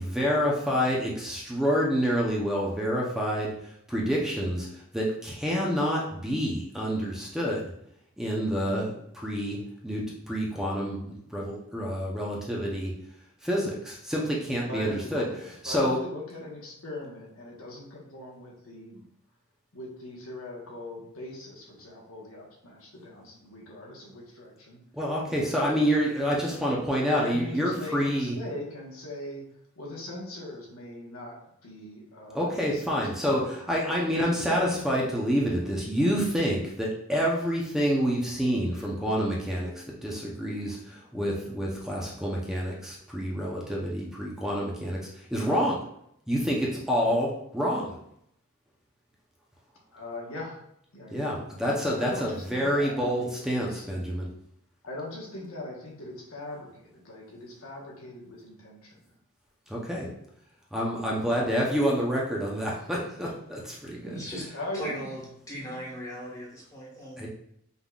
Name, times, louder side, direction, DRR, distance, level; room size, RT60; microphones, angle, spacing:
voice 1, 0.0-7.7 8.2-9.6 9.8-12.9 13.4-16.0 24.9-28.4 32.3-45.8 46.3-48.0 51.1-54.3 59.7-60.1 60.7-64.5 67.2-67.3, equal, ahead, -4 dB, 0.7 m, -28 dB
voice 2, 14.7-19.0 19.7-24.8 25.4-26.2 27.1-29.4 29.7-33.5 49.9-50.6 50.9-53.9 54.8-59.0 64.5-65.1 65.6-65.9, left 1 dB, 85° left, -2 dB, 1.2 m, -40 dB
voice 3, 64.0-64.5 64.7-67.3, equal, 15° left, -5 dB, 1.4 m, -38 dB
5.5 x 3.7 x 2.4 m, 0.73 s
head